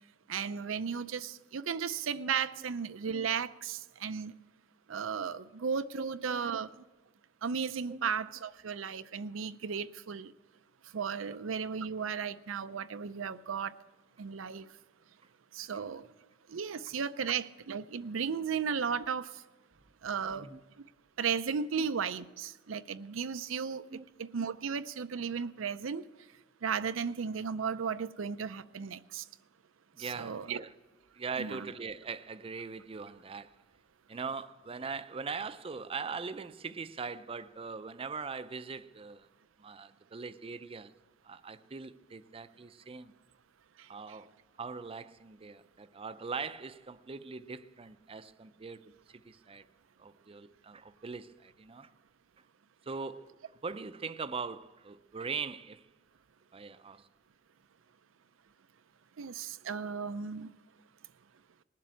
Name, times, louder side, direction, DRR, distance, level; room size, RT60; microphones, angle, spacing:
voice 1, 0.3-4.3 4.9-6.7 7.4-10.3 10.9-13.7 14.2-14.7 15.5-16.1 16.5-19.3 20.0-20.5 21.2-23.8 24.2-26.0 26.6-29.2 30.0-30.6 31.4-31.7 59.2-60.5, right 6 dB, 90° right, 0.5 m, -35 dB
voice 2, 6.0-6.4 7.9-8.1 20.3-20.6 23.9-24.0 29.9-30.7 31.1-33.6 34.1-39.3 39.6-40.9 41.2-43.1 43.9-44.3 44.6-48.8 49.1-49.7 50.0-51.9 52.8-53.4 53.6-55.8 56.5-57.1, right 5 dB, 30° right, 0.5 m, -41 dB
19.5 x 7.5 x 8.3 m
head